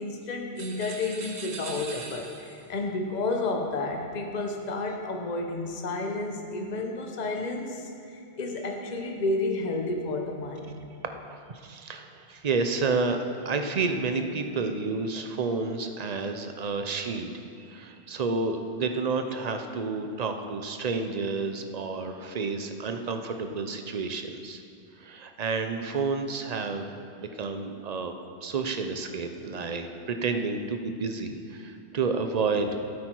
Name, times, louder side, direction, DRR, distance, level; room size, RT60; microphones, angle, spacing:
voice 1, 0.0-10.8, left 2 dB, 40° left, 2 dB, 1.0 m, -31 dB
sound 1, 0.6-2.7, right 4 dB, 75° right, 1.2 m, -41 dB
voice 2, 11.2-17.3 17.7-24.6 25.0-26.9 27.1-28.1 28.4-32.8, right 4 dB, 45° right, 6 dB, 0.7 m, -30 dB
13.0 x 8.4 x 4.6 m, 2.5 s
omnidirectional pair, 1.1 m